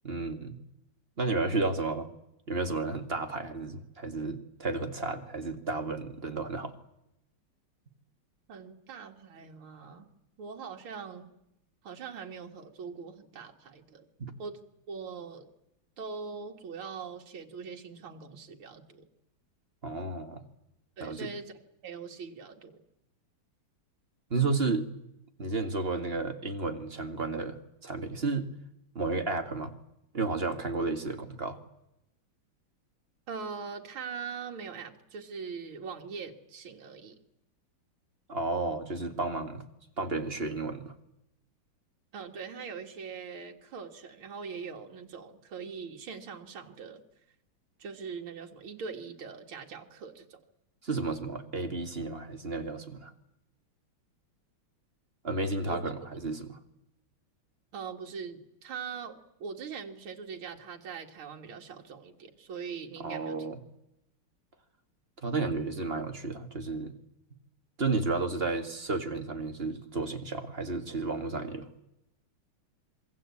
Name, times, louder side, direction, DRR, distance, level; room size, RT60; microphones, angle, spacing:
voice 1, 0.0-0.6 1.2-2.1 2.5-6.7 14.2-14.3 19.8-20.4 21.0-21.3 24.3-25.1 25.4-28.5 28.9-29.7 30.1-31.6 38.3-39.6 40.0-40.9 50.8-53.1 55.2-56.6 63.0-63.6 65.2-66.9 67.8-71.7, right 3 dB, 30° right, 6 dB, 2.1 m, -32 dB
voice 2, 8.5-10.1 10.4-11.3 11.8-14.1 14.4-14.6 14.9-15.5 16.0-19.1 21.0-21.5 21.8-22.8 33.3-37.2 42.1-47.0 47.8-50.4 55.7-55.9 57.7-63.4, right 5 dB, 75° right, 2 dB, 2.8 m, -42 dB
26.5 x 22.5 x 8.5 m, 0.84 s
omnidirectional pair, 2.3 m